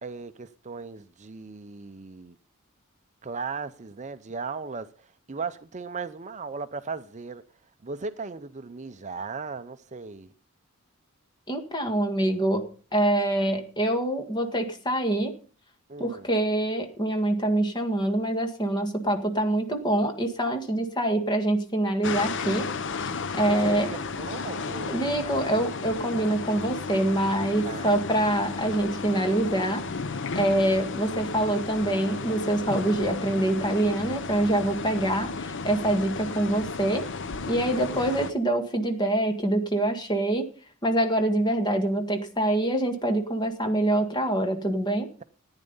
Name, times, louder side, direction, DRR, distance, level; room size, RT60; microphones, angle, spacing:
voice 1, 0.0-2.3 3.2-4.9 5.3-7.4 7.8-10.3 15.9-16.3 23.3-25.0 27.6-28.0 37.9-38.0, right 4 dB, 35° right, 0.6 m, -37 dB
voice 2, 11.5-12.6 12.9-15.3 16.0-22.6 22.9-23.9 24.9-29.8 30.3-37.0 37.5-40.5 40.8-45.1, right 1 dB, 20° left, 1.8 m, -25 dB
sound 1, 22.0-38.3, left 4 dB, 55° left, 0.7 m, -33 dB
14.5 x 9.8 x 5.4 m
head